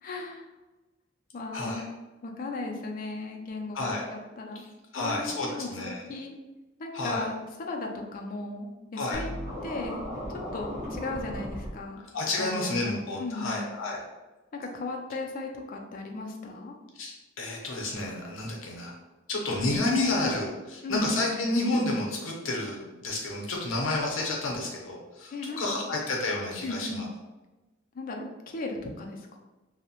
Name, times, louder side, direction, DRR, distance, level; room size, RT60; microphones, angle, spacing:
voice 1, 0.0-0.5 1.3-1.9 2.2-4.6 5.0-6.3 6.8-9.3 9.6-10.0 10.5-12.0 12.4-13.7 14.5-16.7 20.8-21.5 25.3-25.9 26.6-27.1 27.9-29.4, left 2 dB, 45° left, 1 dB, 0.4 m, -36 dB
voice 2, 4.9-6.0 6.9-7.3 9.0-9.2 12.1-14.0 17.0-18.9 19.3-27.1, left 2 dB, 90° left, 0 dB, 0.6 m, -30 dB
Scratching (performance technique), 9.1-11.7, equal, 40° right, 0.9 m, -36 dB
2.7 x 2.0 x 2.8 m, 1.1 s
head